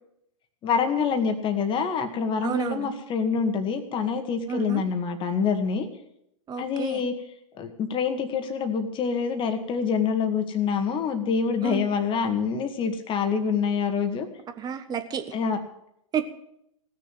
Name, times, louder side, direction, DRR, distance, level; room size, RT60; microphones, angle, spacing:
voice 1, 0.6-5.9 6.6-7.1 7.6-14.3 15.3-15.6, left 6 dB, 30° left, 6 dB, 1.9 m, -26 dB
voice 2, 2.4-2.9 4.5-4.8 6.5-7.0 11.6-11.8 14.6-15.2 16.1-16.3, right 7 dB, 25° right, 9 dB, 1.3 m, -30 dB
16.5 x 6.8 x 9.2 m, 0.77 s
hypercardioid pair, 110°, 17 cm